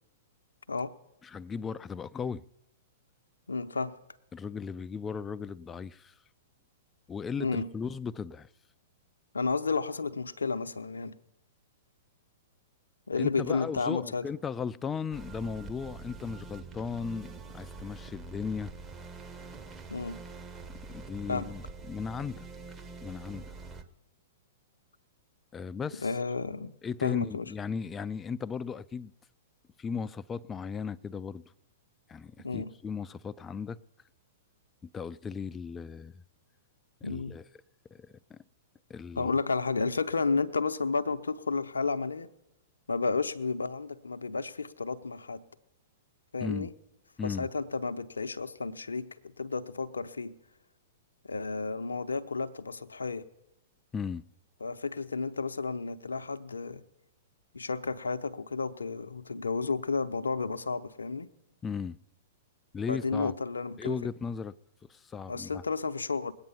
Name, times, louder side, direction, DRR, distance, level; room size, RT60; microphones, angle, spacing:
voice 1, 1.2-2.4 4.3-6.1 7.1-8.5 13.2-18.7 20.9-22.5 23.0-23.4 25.5-26.1 26.8-29.1 29.8-31.4 32.1-33.8 34.9-36.2 37.0-37.4 37.9-38.4 38.9-39.3 46.4-46.7 47.2-47.5 53.9-54.2 61.6-62.0 62.7-63.3 63.8-64.5 64.9-65.6, left 6 dB, 15° left, 0.4 m, -36 dB
voice 2, 3.5-3.9 7.4-7.7 9.3-11.1 13.1-14.2 19.9-20.2 21.3-21.5 26.0-27.5 32.4-32.7 37.0-37.4 39.2-42.3 42.9-45.4 46.3-46.7 47.2-49.1 49.4-50.3 51.3-53.3 54.6-56.8 57.5-61.3 62.9-64.0 65.3-66.3, left 4 dB, 80° left, 0.7 m, -32 dB
sound 1, 15.1-23.8, right 4 dB, 15° right, 1.1 m, -45 dB
20.5 x 8.9 x 5.7 m
figure-of-eight pair, 105°, 0 cm